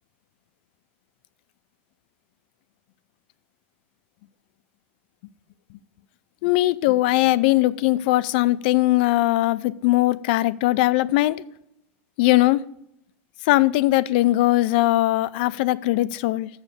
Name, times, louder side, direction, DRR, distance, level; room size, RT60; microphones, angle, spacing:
voice 1, 6.4-11.4 12.2-12.6 13.5-16.5, left 17 dB, 50° left, 19 dB, 0.3 m, -20 dB
7.2 x 6.6 x 6.6 m, 0.79 s
supercardioid pair, 170°, 7 cm